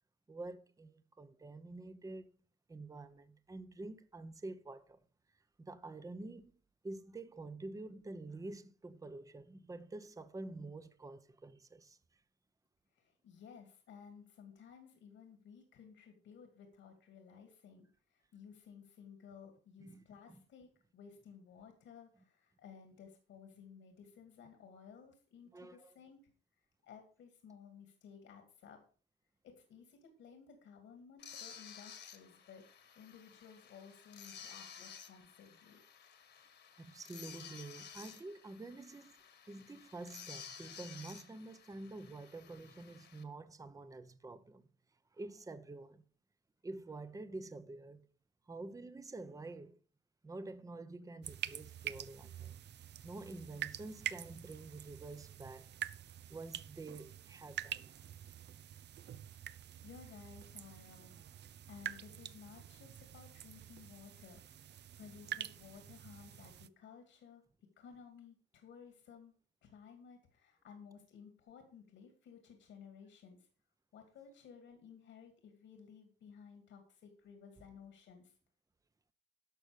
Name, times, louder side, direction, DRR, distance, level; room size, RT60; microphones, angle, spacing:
voice 1, 0.3-2.3 2.7-5.0 5.7-12.0 19.8-20.0 20.3-20.4 25.5-25.9 36.8-39.2 39.5-44.7 45.1-46.0 46.6-48.1 48.5-49.8 50.2-52.6 53.0-55.7 56.3-57.9, right 2 dB, 15° right, 0.8 m, -48 dB
voice 2, 12.9-26.2 26.8-28.8 29.4-32.7 32.9-35.8 59.8-64.4 65.0-69.3 69.6-73.5 73.9-78.3, left 6 dB, 80° left, 2.4 m, -56 dB
sound 1, 31.2-43.2, left 7 dB, 60° left, 1.7 m, -54 dB
sound 2, 51.2-66.7, right 11 dB, 60° right, 0.6 m, -47 dB
11.5 x 6.4 x 5.0 m
cardioid pair, 90°, 20 cm